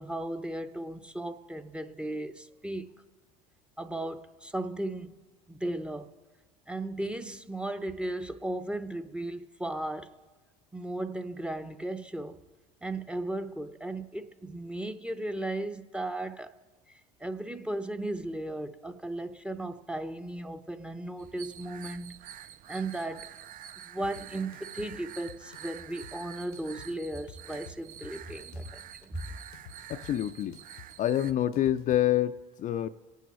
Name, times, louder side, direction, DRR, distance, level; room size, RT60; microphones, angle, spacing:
voice 1, 0.0-2.9 3.8-5.1 5.5-6.1 6.7-10.2 10.7-12.4 12.8-16.5 16.9-22.2 22.7-23.3 23.8-29.3, right 1 dB, 5° right, 0.6 m, -36 dB
sound 1, 21.2-31.3, right 10 dB, 45° right, 0.4 m, -47 dB
sound 2, 24.0-32.0, left 8 dB, 80° left, 0.7 m, -51 dB
voice 2, 29.9-30.6 31.0-32.9, left 12 dB, 40° left, 0.4 m, -27 dB
23.0 x 9.2 x 3.1 m
hypercardioid pair, 80°, 20 cm